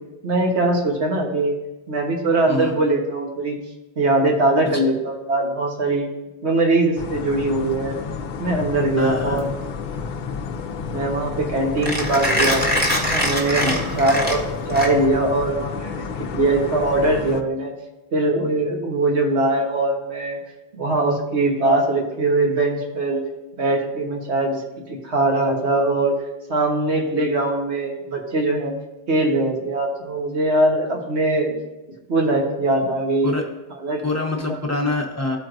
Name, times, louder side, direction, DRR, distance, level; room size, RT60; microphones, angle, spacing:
voice 1, 0.2-1.5 1.9-3.6 4.0-6.1 6.4-8.0 8.4-9.5 10.9-12.6 13.0-16.0 16.3-17.7 18.1-20.4 20.7-23.2 23.6-24.6 24.9-26.1 26.5-28.7 29.1-31.5 32.1-33.3 33.8-34.0, right 2 dB, 80° right, 1 dB, 1.5 m, -21 dB
sound 1, 7.0-17.4, left 5 dB, 55° left, 0.6 m, -31 dB
voice 2, 9.0-9.5 13.6-13.9 33.2-33.4 34.0-35.4, left 2 dB, 15° left, 0 dB, 0.8 m, -25 dB
Mechanisms, 9.2-15.3, equal, 10° right, 1.1 m, -24 dB
13.5 x 4.5 x 2.5 m, 1.0 s
omnidirectional pair, 1.1 m